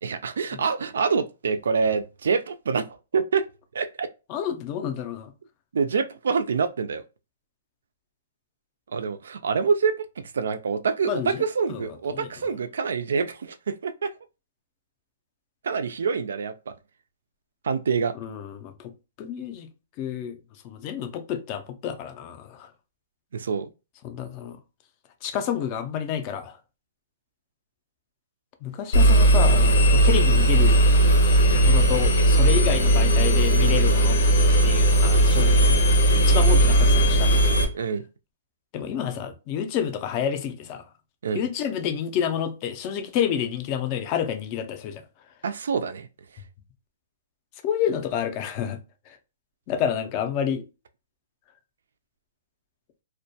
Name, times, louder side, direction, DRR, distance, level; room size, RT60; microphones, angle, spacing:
voice 1, 0.0-3.5 3.7-4.1 5.7-7.0 8.9-14.1 15.6-16.7 17.6-18.1 23.3-23.7 37.7-38.0 41.2-41.5 45.4-46.1, right 5 dB, 85° right, 0.3 m, -26 dB
voice 2, 4.3-5.3 11.1-11.4 11.7-11.8 12.1-12.3 18.2-18.9 19.2-19.7 20.0-20.4 20.6-22.7 24.0-24.6 25.2-26.6 28.6-30.8 31.6-34.2 34.6-35.8 36.1-37.5 38.7-40.8 41.3-45.0 47.6-48.8 49.1-49.2 49.7-50.6, left 9 dB, 25° left, 0.3 m, -29 dB
Engine, 28.9-37.6, right 1 dB, 85° left, 0.6 m, -17 dB
2.1 x 2.1 x 2.7 m
hypercardioid pair, 170°, 0 cm